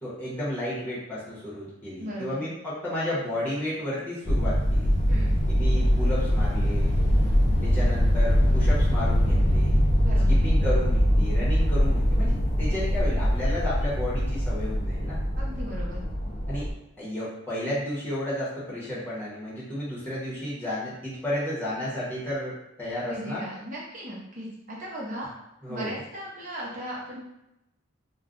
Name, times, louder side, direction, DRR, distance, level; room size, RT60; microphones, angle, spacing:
voice 1, 0.0-4.9 5.5-6.9 7.6-9.8 10.3-15.2 16.5-16.7 17.0-23.5 25.6-26.0, left 1 dB, 10° left, -9 dB, 0.9 m, -32 dB
voice 2, 2.0-2.4 5.1-5.4 10.0-10.4 15.4-16.0 23.0-25.3 25.7-27.2, equal, 35° right, -5 dB, 0.8 m, -37 dB
sound 1, 4.3-16.7, equal, 30° left, 0.4 m, -23 dB
2.4 x 2.2 x 3.7 m, 0.89 s
head